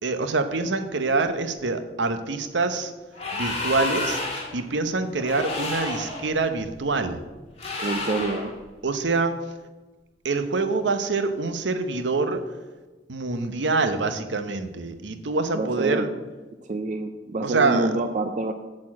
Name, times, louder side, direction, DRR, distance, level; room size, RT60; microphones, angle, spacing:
voice 1, 0.0-2.9 3.3-4.2 4.5-7.2 8.8-9.3 10.2-12.4 13.1-16.1 17.4-17.9, right 3 dB, 75° right, 9 dB, 0.8 m, -25 dB
sound 1, 3.1-4.6 5.2-6.2 7.6-8.5, left 2 dB, 35° left, 1.9 m, -30 dB
voice 2, 7.8-8.5 15.5-16.1 16.6-18.5, right 2 dB, 40° right, 7 dB, 0.4 m, -27 dB
8.7 x 4.4 x 7.3 m, 1.2 s
head